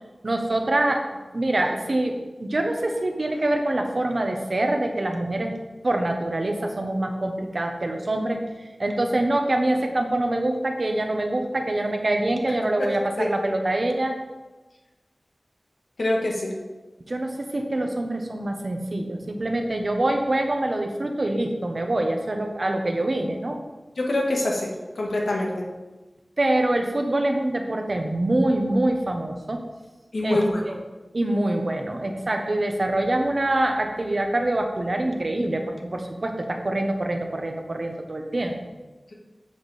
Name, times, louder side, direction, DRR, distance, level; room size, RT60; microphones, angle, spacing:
voice 1, 0.2-1.1 1.3-5.6 5.8-8.4 8.8-14.2 17.1-23.6 26.4-29.6 30.2-30.4 30.7-30.8 31.1-38.6, right 1 dB, 60° right, 3 dB, 1.2 m, -25 dB
voice 2, 16.0-16.5 24.0-25.6 30.1-30.6, left 1 dB, 90° left, -1 dB, 1.6 m, -24 dB
9.7 x 5.4 x 4.3 m, 1.2 s
wide cardioid pair, 45°, 0 cm